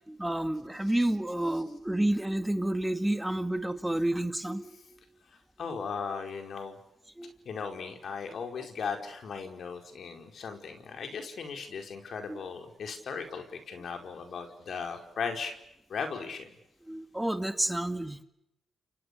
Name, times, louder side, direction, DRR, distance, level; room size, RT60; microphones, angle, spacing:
voice 1, 0.1-4.7 5.7-5.9 7.2-7.3 12.3-12.4 16.9-18.2, right 1 dB, 10° right, 8 dB, 2.1 m, -30 dB
voice 2, 5.6-6.8 7.4-15.5 15.9-16.5, left 5 dB, 65° left, 4 dB, 4.9 m, -37 dB
30.0 x 25.0 x 6.9 m, 0.83 s
supercardioid pair, 60°, 0 cm